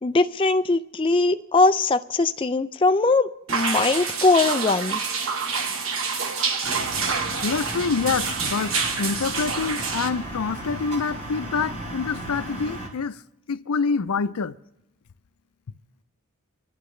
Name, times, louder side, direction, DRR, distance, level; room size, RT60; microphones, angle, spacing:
voice 1, 0.0-5.0, left 3 dB, 25° left, 0.4 m, -21 dB
sound 1, 3.5-10.1, right 5 dB, 70° right, 1.2 m, -27 dB
sound 2, 6.6-12.9, right 1 dB, 30° right, 3.5 m, -35 dB
voice 2, 7.4-13.2 13.5-14.6, left 5 dB, 85° left, 0.5 m, -26 dB
26.0 x 12.0 x 3.2 m
head